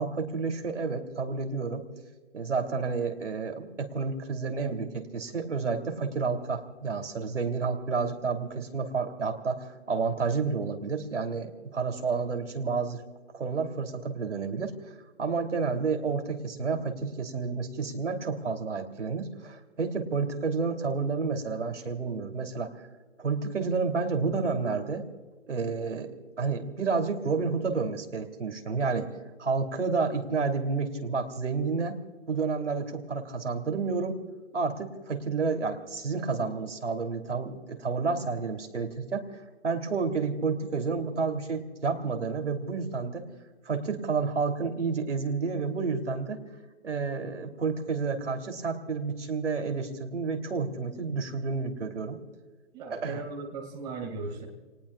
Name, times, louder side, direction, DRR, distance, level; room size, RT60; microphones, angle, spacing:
voice 1, 0.0-1.8 2.3-13.0 13.3-14.7 15.2-22.7 23.2-25.0 25.5-26.1 26.4-29.1 29.4-32.0 32.3-34.2 34.5-39.4 39.6-43.3 43.6-46.4 46.8-52.2 52.9-53.2, right 4 dB, 70° right, 4 dB, 3.1 m, -30 dB
voice 2, 52.7-54.4, right 3 dB, 10° right, -1 dB, 2.3 m, -37 dB
30.0 x 20.0 x 2.4 m, 1.4 s
hypercardioid pair, 165°, 38 cm